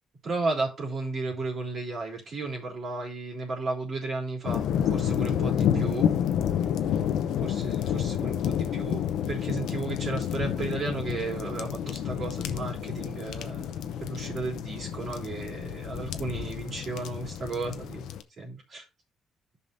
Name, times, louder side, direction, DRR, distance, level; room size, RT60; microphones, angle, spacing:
voice 1, 0.2-6.1 7.4-13.7 14.0-18.0 18.4-18.8, right 3 dB, 55° right, 3.6 m, -34 dB
sound 1, 4.4-18.2, left 9 dB, 80° left, 0.7 m, -29 dB
14.0 x 5.7 x 2.6 m
cardioid pair, 90°, 0 cm